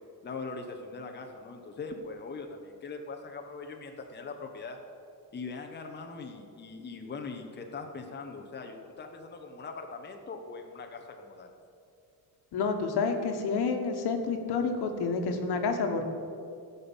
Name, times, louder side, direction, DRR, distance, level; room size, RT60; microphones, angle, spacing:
voice 1, 0.2-4.8 5.3-11.5, left 4 dB, 25° left, 4 dB, 0.9 m, -41 dB
voice 2, 12.5-16.0, left 4 dB, 80° left, 4 dB, 1.4 m, -29 dB
15.5 x 5.5 x 7.2 m, 2.5 s
cardioid pair, 145°, 38 cm